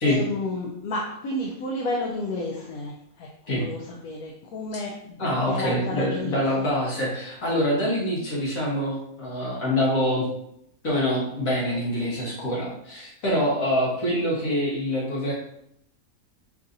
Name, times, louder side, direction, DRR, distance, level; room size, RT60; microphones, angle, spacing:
voice 1, 0.0-2.9 3.2-3.3 3.6-5.2 5.5-6.7, left 2 dB, 85° left, -2 dB, 1.1 m, -31 dB
voice 2, 5.2-10.3 10.8-15.3, equal, 65° left, -4 dB, 1.7 m, -25 dB
5.4 x 2.7 x 2.6 m, 0.73 s
omnidirectional pair, 1.5 m